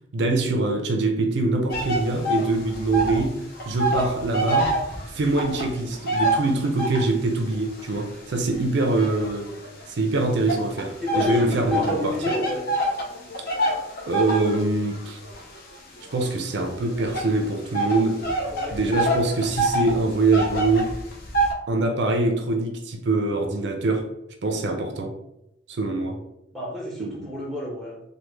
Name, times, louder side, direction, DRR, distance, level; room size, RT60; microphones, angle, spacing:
voice 1, 0.1-4.7 5.1-9.5 9.9-12.1 13.6-13.7 14.1-15.2 16.1-18.3 18.7-20.9 21.7-24.0 24.4-25.2 25.7-26.2 27.0-27.3, right 2 dB, 60° right, 0.4 m, -24 dB
sound 1, 1.7-3.3 3.5-7.2 7.8-9.9 10.5-21.5, right 1 dB, 50° left, 0.6 m, -26 dB
voice 2, 11.0-12.7 18.5-18.8 26.5-28.0, left 1 dB, ahead, 0.7 m, -30 dB
3.3 x 2.2 x 3.1 m
head